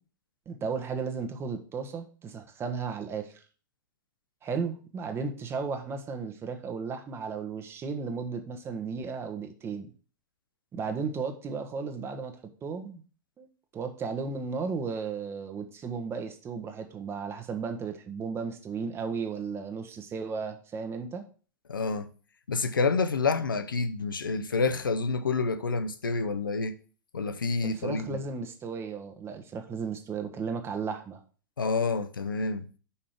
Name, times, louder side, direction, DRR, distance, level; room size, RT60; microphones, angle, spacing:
voice 1, 0.5-3.4 4.4-9.9 10.7-13.0 13.4-13.5 13.7-21.2 27.6-31.2, right 5 dB, 20° right, 1.1 m, -34 dB
voice 2, 21.7-22.1 22.5-26.7 27.1-28.2 31.6-32.7, left 4 dB, 75° left, 0.7 m, -28 dB
5.6 x 5.0 x 5.9 m
figure-of-eight pair, 100°, 11 cm